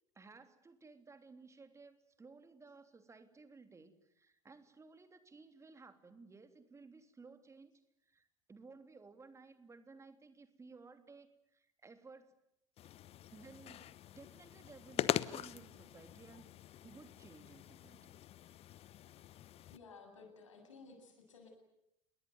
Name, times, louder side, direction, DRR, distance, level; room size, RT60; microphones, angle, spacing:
voice 1, 0.1-7.7 8.0-12.3 13.3-16.5 16.8-18.2, right 4 dB, 20° right, 9 dB, 3.2 m, -57 dB
sound 1, 12.8-19.8, left 12 dB, 40° left, 1.1 m, -42 dB
voice 2, 19.7-21.5, left 4 dB, 75° left, 4 dB, 7.8 m, -56 dB
28.5 x 21.5 x 9.5 m, 0.80 s
figure-of-eight pair, 70°, 16 cm